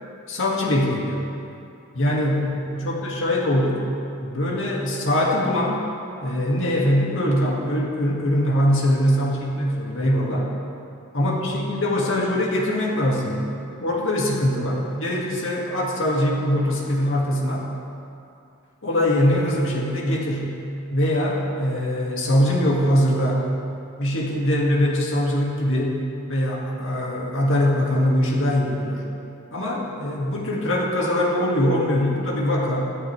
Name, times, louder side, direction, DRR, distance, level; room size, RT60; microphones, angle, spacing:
voice 1, 0.3-1.3 1.9-3.8 4.2-5.8 6.2-10.5 11.1-13.4 13.8-17.7 18.8-20.6 20.9-23.5 24.0-29.0 29.5-32.9, left 1 dB, 60° left, -3 dB, 2.1 m, -22 dB
23.5 x 8.0 x 3.4 m, 2.6 s
head